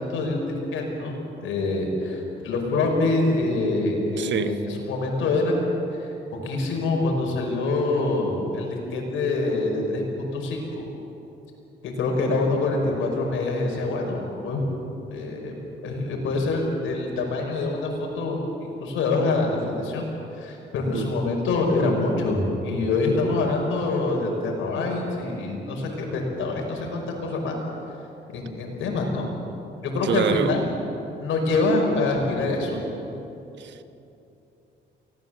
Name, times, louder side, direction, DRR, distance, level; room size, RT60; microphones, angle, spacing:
voice 1, 0.0-6.1 6.4-10.0 10.3-10.8 11.8-14.7 15.1-15.5 15.8-20.1 20.3-27.6 28.3-29.3 29.8-30.6 31.2-32.8, left 2 dB, 85° left, 1 dB, 5.5 m, -25 dB
voice 2, 4.2-4.6 20.9-21.1 30.0-30.6 33.6-33.8, right 9 dB, 65° right, 11 dB, 1.1 m, -26 dB
24.0 x 18.0 x 7.8 m, 2.9 s
cardioid pair, 90°, 20 cm